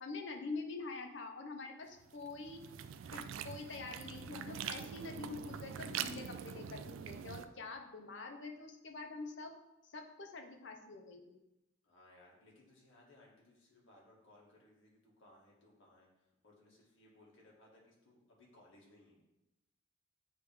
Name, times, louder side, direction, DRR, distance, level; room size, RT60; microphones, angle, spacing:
voice 1, 0.0-2.6 3.1-9.5 9.8-11.4, left 3 dB, 65° left, 3 dB, 0.8 m, -46 dB
sound 1, 2.0-7.4, right 8 dB, 85° right, 0.3 m, -44 dB
voice 2, 11.8-19.2, left 1 dB, 85° left, -3 dB, 1.9 m, -64 dB
9.1 x 3.2 x 3.4 m, 0.95 s
head